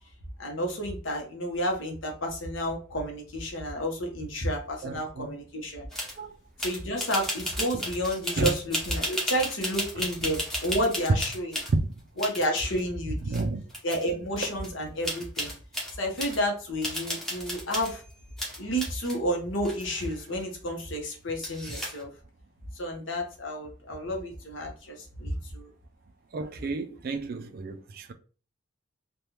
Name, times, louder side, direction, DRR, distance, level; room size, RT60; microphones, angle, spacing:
voice 1, 0.4-5.8 6.6-11.5 12.2-13.4 13.8-15.5 16.0-18.0 18.6-22.1 22.7-25.7, equal, 65° left, 0.9 m, -31 dB
voice 2, 4.8-5.3 6.2-6.3 7.7-7.9 8.4-8.5 11.7-12.0 13.2-13.6 26.3-28.1, right 3 dB, 45° right, 0.4 m, -31 dB
sound 1, 5.9-6.2 6.6-11.7 12.2-12.8 13.3-13.4 13.7-14.1 14.4-14.7 15.0-16.4 16.8-18.0 18.4-19.2 19.6-20.4 21.4-22.0, equal, ahead, 0.7 m, -34 dB
3.3 x 2.3 x 2.8 m
head